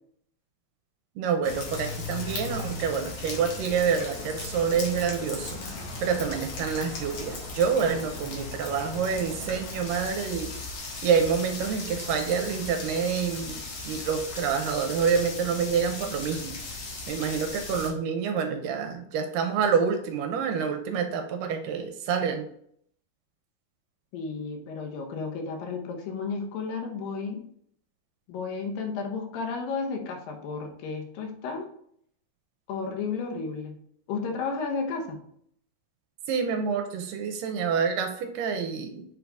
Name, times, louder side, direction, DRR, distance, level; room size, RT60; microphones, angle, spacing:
voice 1, 1.2-10.5 11.0-16.5 17.1-22.5 36.3-39.0, right 6 dB, 80° right, 6 dB, 2.3 m, -27 dB
sound 1, 1.4-17.9, left 3 dB, 55° left, 2.0 m, -37 dB
voice 2, 24.1-27.4 28.3-31.7 32.7-33.8 34.1-35.2, left 4 dB, 85° left, 3 dB, 2.7 m, -33 dB
7.5 x 3.9 x 3.4 m, 0.67 s
omnidirectional pair, 3.9 m